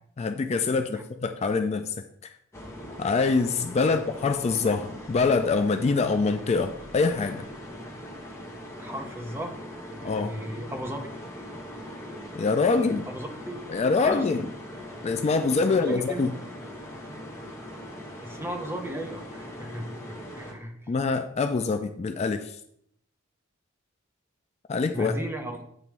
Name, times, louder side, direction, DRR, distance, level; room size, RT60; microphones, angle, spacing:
voice 1, 0.2-1.9 2.2-2.3 3.0-7.5 10.0-10.4 12.3-13.0 13.7-14.5 15.0-16.3 20.9-22.6 24.7-25.1, left 4 dB, 30° left, 0.3 m, -25 dB
sound 1, 2.5-20.5, equal, 15° left, 1.1 m, -41 dB
voice 2, 8.8-9.5 9.9-11.0 12.7-13.6 14.1-14.3 15.7-16.2 18.2-20.9 24.9-25.6, right 1 dB, 10° right, 0.7 m, -36 dB
8.8 x 3.0 x 4.6 m
head